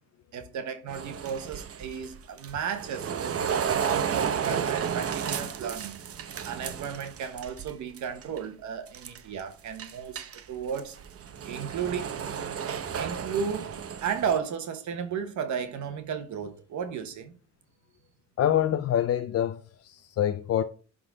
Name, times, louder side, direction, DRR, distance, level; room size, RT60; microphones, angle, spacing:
voice 1, 0.3-6.0 6.4-10.2 10.5-11.0 11.5-12.1 13.0-17.3, right 7 dB, 70° right, 1.2 m, -34 dB
sound 1, 0.9-7.7 8.0-8.4 8.9-9.4 9.8-14.4, right 7 dB, 50° right, 0.9 m, -32 dB
voice 2, 18.4-20.6, left 10 dB, 55° left, 0.6 m, -26 dB
11.0 x 3.9 x 3.9 m
cardioid pair, 90°, 30 cm